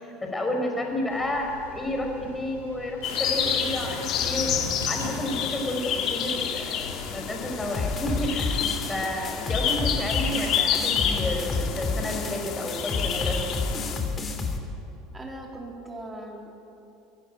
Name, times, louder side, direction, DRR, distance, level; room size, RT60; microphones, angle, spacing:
voice 1, 0.0-4.5 4.9-8.6 8.9-13.4, left 1 dB, 15° left, 2 dB, 5.6 m, -31 dB
sound 1, 1.1-11.6, left 3 dB, 80° left, 4.4 m, -41 dB
sound 2, 3.0-14.0, left 8 dB, 45° left, 2.4 m, -29 dB
sound 3, 7.7-14.6, left 3 dB, 30° left, 3.2 m, -30 dB
voice 2, 15.1-16.7, right 1 dB, 20° right, 0 dB, 4.2 m, -40 dB
22.0 x 16.5 x 9.1 m, 2.7 s
figure-of-eight pair, 70°, 0 cm